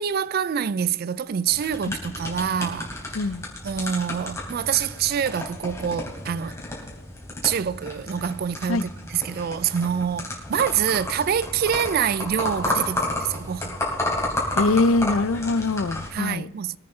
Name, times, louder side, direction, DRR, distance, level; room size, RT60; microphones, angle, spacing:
voice 1, 0.0-2.9 3.6-6.6 7.4-13.8 16.1-16.8, right 8 dB, 45° right, 0.3 m, -26 dB
sound 1, 1.5-16.1, left 1 dB, 15° left, 3.1 m, -32 dB
voice 2, 14.6-16.5, left 3 dB, 75° left, 0.5 m, -23 dB
24.0 x 8.7 x 3.2 m
head